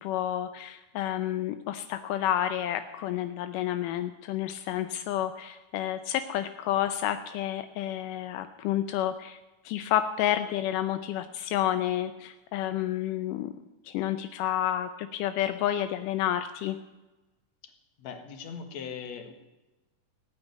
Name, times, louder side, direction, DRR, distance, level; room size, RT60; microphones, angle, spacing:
voice 1, 0.0-9.4 9.7-13.5 13.9-16.8, left 11 dB, 85° left, 10 dB, 2.3 m, -30 dB
voice 2, 18.0-19.3, left 6 dB, 60° left, 7 dB, 2.7 m, -40 dB
17.5 x 8.9 x 9.2 m, 1.1 s
omnidirectional pair, 3.7 m